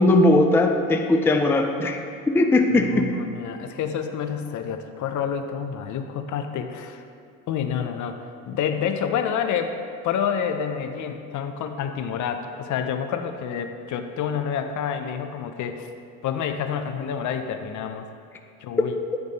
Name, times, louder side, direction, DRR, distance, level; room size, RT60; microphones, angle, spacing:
voice 1, 0.0-2.0 2.3-3.1, left 2 dB, 5° left, 4 dB, 0.4 m, -19 dB
voice 2, 2.9-7.0 7.5-9.8 10.0-15.9 16.2-18.1 18.6-18.9, left 7 dB, 55° left, 7 dB, 0.6 m, -28 dB
9.6 x 3.5 x 4.0 m, 2.4 s
supercardioid pair, 85°, 36 cm